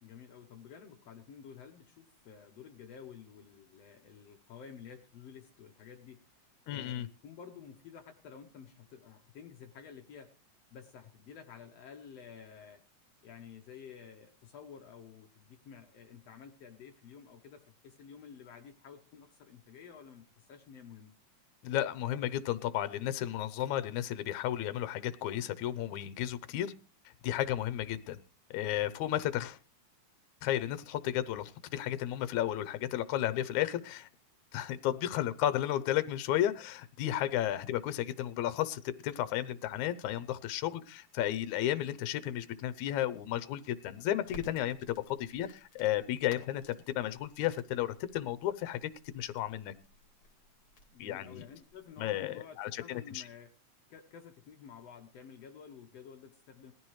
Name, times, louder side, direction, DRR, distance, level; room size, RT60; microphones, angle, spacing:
voice 1, 0.0-6.2 6.7-10.3 10.7-12.8 13.2-21.1 50.9-53.5 53.9-56.7, left 7 dB, 65° left, 4 dB, 2.0 m, -51 dB
voice 2, 6.7-7.1 21.6-26.7 27.2-28.2 28.5-29.6 30.4-34.1 34.5-49.7 51.0-51.5 52.0-53.2, left 12 dB, 80° left, 13 dB, 2.2 m, -33 dB
Crackle, 44.3-52.2, left 3 dB, 45° left, 3.1 m, -57 dB
19.0 x 14.0 x 3.2 m, 0.37 s
omnidirectional pair, 3.4 m